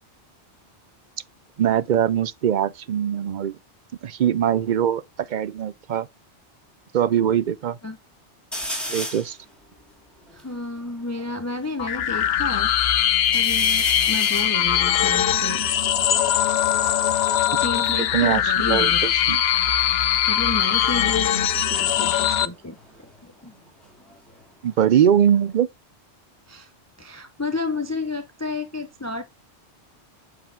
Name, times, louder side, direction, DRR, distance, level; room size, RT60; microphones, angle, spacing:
voice 1, 1.6-3.6 4.0-6.1 6.9-7.8 8.9-9.4 18.1-19.4 24.6-25.7, right 9 dB, 55° right, 0.6 m, -22 dB
sound 1, 8.5-9.4 9.9-10.0 10.2-11.7 12.3-12.8 13.2-16.6 17.6-19.5 19.7-20.2 21.8-24.4 24.8-25.6, equal, ahead, 2.9 m, -36 dB
voice 2, 10.3-12.7 13.3-15.7 17.6-19.1 20.3-22.8 23.2-23.5 26.5-26.7 27.0-29.2, left 3 dB, 20° left, 0.6 m, -31 dB
sound 2, 11.8-22.5, left 10 dB, 65° left, 0.9 m, -21 dB
7.9 x 4.8 x 3.4 m
omnidirectional pair, 1.2 m